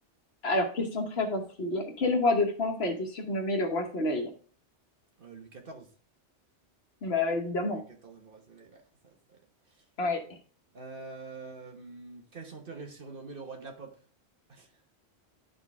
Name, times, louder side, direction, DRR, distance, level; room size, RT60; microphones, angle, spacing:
voice 1, 0.4-4.3 7.0-7.8 10.0-10.2, left 2 dB, 60° left, 4 dB, 1.3 m, -28 dB
voice 2, 5.2-5.9 7.6-8.8 9.3-9.4 9.7-9.8 10.7-14.0 14.5-14.7, right 4 dB, 50° right, 3 dB, 1.3 m, -45 dB
11.0 x 3.8 x 3.5 m, 0.42 s
omnidirectional pair, 1.2 m